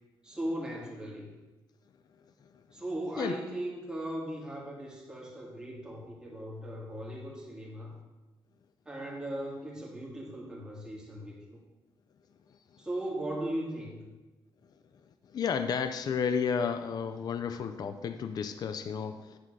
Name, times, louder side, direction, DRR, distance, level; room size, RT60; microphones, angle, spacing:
voice 1, 0.2-1.3 2.7-7.9 8.9-11.6 12.8-14.0, right 1 dB, 10° right, -4 dB, 2.0 m, -38 dB
voice 2, 15.3-19.4, left 6 dB, 50° left, 9 dB, 0.4 m, -32 dB
9.8 x 3.8 x 6.1 m, 1.1 s
wide cardioid pair, 140°, 9 cm